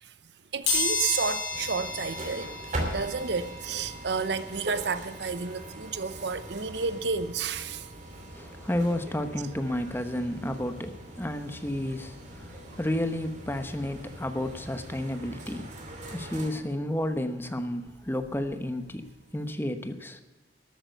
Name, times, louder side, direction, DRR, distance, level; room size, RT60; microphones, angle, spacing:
voice 1, 0.5-2.5 2.9-7.9 12.7-12.8, right 5 dB, 65° right, 0.7 m, -31 dB
sound 1, 0.7-11.3 11.8-11.9 13.0-13.1 13.4-15.5 15.9-18.5 18.8-19.0 19.3-19.4, left 3 dB, 75° left, 5.8 m, -36 dB
sound 2, 1.5-16.5, right 1 dB, 40° right, 2.7 m, -41 dB
voice 2, 8.3-15.7 16.1-20.2, left 1 dB, 10° left, 1.0 m, -32 dB
13.0 x 8.7 x 8.0 m
head